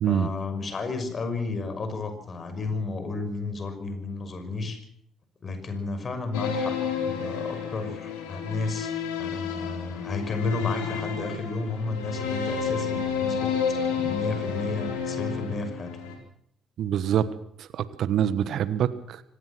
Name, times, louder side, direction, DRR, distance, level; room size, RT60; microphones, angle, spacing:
voice 1, 0.1-4.8 5.4-8.9 9.2-16.0, left 3 dB, 45° left, 9 dB, 6.0 m, -32 dB
sound 1, 6.3-16.2, left 6 dB, 80° left, 3.9 m, -30 dB
voice 2, 16.8-17.3 17.6-19.2, right 10 dB, 65° right, 15 dB, 1.2 m, -25 dB
25.0 x 18.0 x 6.1 m, 0.70 s
hypercardioid pair, 45°, 0 cm